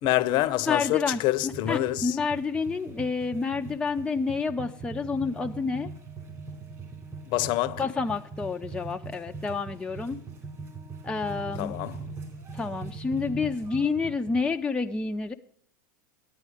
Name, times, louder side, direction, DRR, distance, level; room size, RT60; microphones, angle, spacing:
voice 1, 0.0-2.2 7.3-7.8 11.6-12.0, left 15 dB, 45° left, 0.7 m, -26 dB
voice 2, 0.7-5.9 7.8-10.2 11.0-11.8 12.5-15.3, left 4 dB, 10° left, 0.5 m, -29 dB
sound 1, 1.4-14.4, right 4 dB, 30° right, 3.6 m, -41 dB
10.5 x 9.0 x 4.9 m
hypercardioid pair, 110°, 11 cm